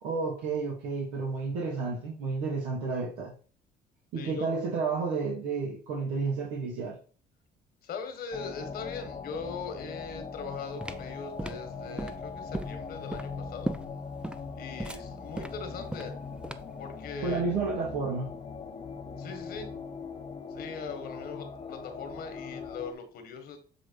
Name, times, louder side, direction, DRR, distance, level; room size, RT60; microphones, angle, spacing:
voice 1, 0.0-3.3 4.1-7.0 17.2-18.3, right 4 dB, 90° right, -2 dB, 1.9 m, -31 dB
voice 2, 4.2-4.6 7.8-13.8 14.5-16.2 16.8-17.7 19.2-19.7 20.5-23.6, left 5 dB, 65° left, 7 dB, 1.7 m, -40 dB
sound 1, 8.3-22.9, left 5 dB, 35° left, 0.9 m, -41 dB
sound 2, 10.4-16.9, right 1 dB, 5° right, 0.5 m, -37 dB
7.6 x 3.3 x 4.7 m, 0.39 s
cardioid pair, 110°, 17 cm